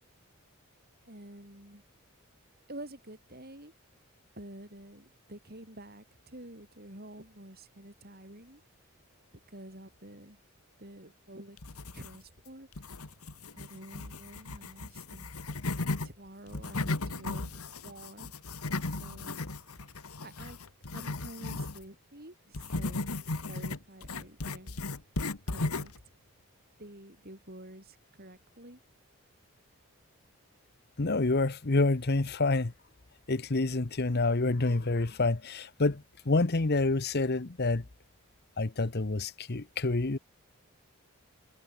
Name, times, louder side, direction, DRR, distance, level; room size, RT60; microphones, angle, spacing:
voice 1, 1.0-1.8 2.7-3.7 4.4-8.6 9.5-10.4 10.8-11.6 11.9-12.7 13.6-15.3 16.0-18.3 18.8-19.5 20.2-20.6 20.9-23.2 23.4-24.8 25.5-25.9 26.8-28.8, right 1 dB, 45° right, 7.9 m, -49 dB
sound 1, 11.6-12.4 12.7-16.1 16.5-21.8 22.5-26.0, left 2 dB, 80° left, 1.8 m, -36 dB
voice 2, 31.0-32.7 33.3-37.8 38.6-40.2, left 3 dB, 45° left, 1.0 m, -28 dB
head